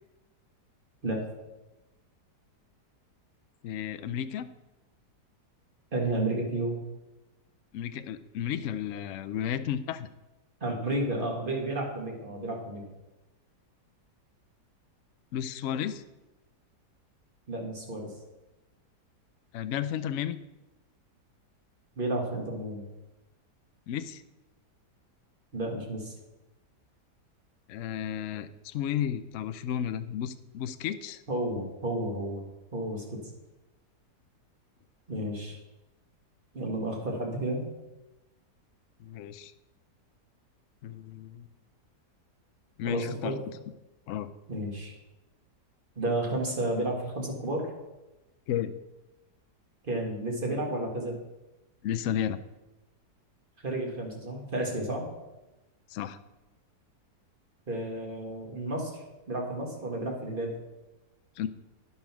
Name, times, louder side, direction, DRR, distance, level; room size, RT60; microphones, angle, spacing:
voice 1, 3.6-4.5 7.7-10.1 15.3-16.0 19.5-20.4 23.9-24.2 27.7-31.2 39.0-39.5 40.8-41.5 42.8-43.4 44.1-44.3 48.5-48.7 51.8-52.4 55.9-56.2 61.4-61.5, left 10 dB, 70° left, 11 dB, 0.7 m, -33 dB
voice 2, 5.9-6.8 10.6-12.8 17.5-18.1 22.0-22.8 25.5-26.1 31.3-32.4 32.7-33.2 35.1-35.6 36.5-37.6 42.9-43.4 44.5-44.9 45.9-47.7 49.8-51.2 53.6-55.1 57.7-60.5, right 1 dB, 30° right, 0 dB, 1.8 m, -32 dB
10.5 x 5.5 x 5.9 m, 1.0 s
omnidirectional pair, 1.8 m